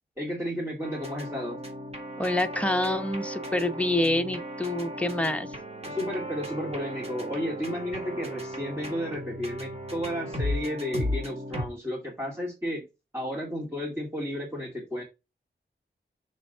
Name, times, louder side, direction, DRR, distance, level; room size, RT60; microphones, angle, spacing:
voice 1, 0.2-1.6 5.9-12.9 13.1-15.0, equal, 15° right, 2.6 m, -33 dB
sound 1, 0.8-11.7, equal, 35° right, 3.4 m, -35 dB
voice 2, 2.2-5.5, left 1 dB, 5° left, 0.9 m, -27 dB
6.5 x 5.0 x 5.5 m
wide cardioid pair, 125°, 19 cm